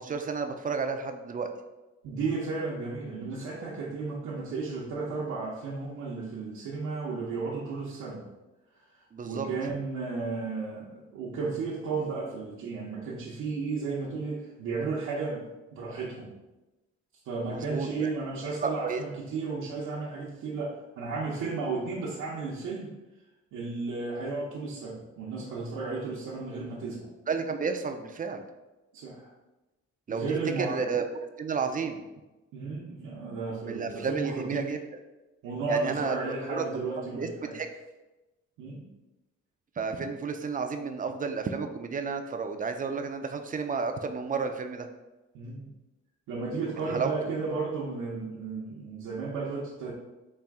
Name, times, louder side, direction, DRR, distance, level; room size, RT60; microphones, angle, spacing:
voice 1, 0.0-1.5 9.1-9.5 17.5-18.1 18.6-19.0 27.3-28.4 30.1-30.2 30.6-31.0 31.4-32.0 33.7-35.0 35.7-36.2 36.5-36.6 37.2-37.3 37.5-37.7 39.8-44.9 46.7-47.3, right 5 dB, 30° right, 6 dB, 0.4 m, -32 dB
voice 2, 2.0-8.2 9.2-16.3 17.2-22.9 23.5-27.1 28.9-29.3 30.1-30.9 32.5-34.7 35.4-37.6 38.6-38.9 45.3-45.7 46.3-49.9, right 4 dB, 80° right, -7 dB, 0.8 m, -34 dB
4.2 x 2.4 x 3.5 m, 1.1 s
cardioid pair, 90°, 30 cm